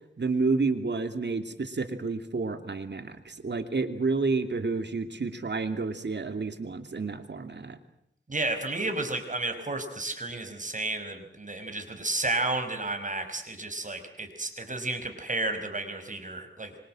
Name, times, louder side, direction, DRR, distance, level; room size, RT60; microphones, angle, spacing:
voice 1, 0.2-7.8, right 3 dB, 65° right, 8 dB, 2.7 m, -30 dB
voice 2, 8.3-16.7, right 2 dB, 40° right, 7 dB, 5.2 m, -32 dB
26.0 x 24.5 x 7.7 m, 0.75 s
wide cardioid pair, 65°, 19 cm